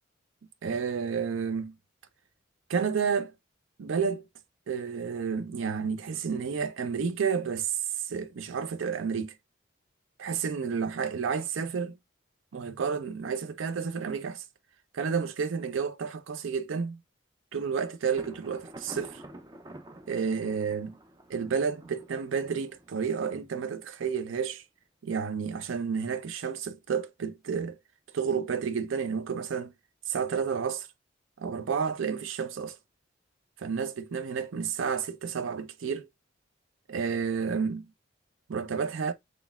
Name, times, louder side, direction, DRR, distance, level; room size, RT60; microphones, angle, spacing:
voice 1, 0.6-1.7 2.7-3.3 3.8-4.2 4.7-9.3 10.2-11.9 12.5-14.4 14.9-17.0 17.5-19.2 20.1-21.0 21.3-24.6 25.0-27.8 28.1-29.7 30.1-30.9 31.4-32.8 33.6-36.1 36.9-37.9 38.5-39.1, right 6 dB, 90° right, 0.5 m, -31 dB
Thunder, 18.2-23.8, right 1 dB, 20° right, 0.4 m, -48 dB
4.0 x 3.2 x 2.2 m
head